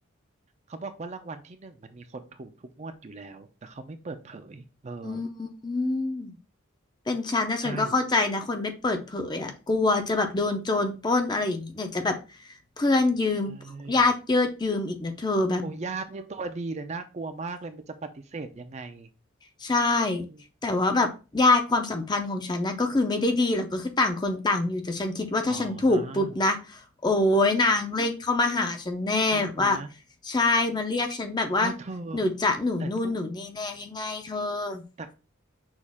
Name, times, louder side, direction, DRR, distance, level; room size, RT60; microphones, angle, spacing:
voice 1, 0.7-5.3 7.6-8.0 13.5-14.0 15.6-19.1 20.2-20.4 25.5-26.4 29.3-29.9 31.6-32.3 32.8-33.1 35.0-35.1, right 3 dB, 35° right, 8 dB, 0.4 m, -38 dB
voice 2, 5.0-6.3 7.1-12.1 12.8-13.5 13.9-15.6 19.6-20.3 20.6-21.1 21.3-29.8 30.2-31.7 32.1-34.8, left 2 dB, 20° left, 5 dB, 0.5 m, -25 dB
6.2 x 2.4 x 3.5 m, 0.31 s
head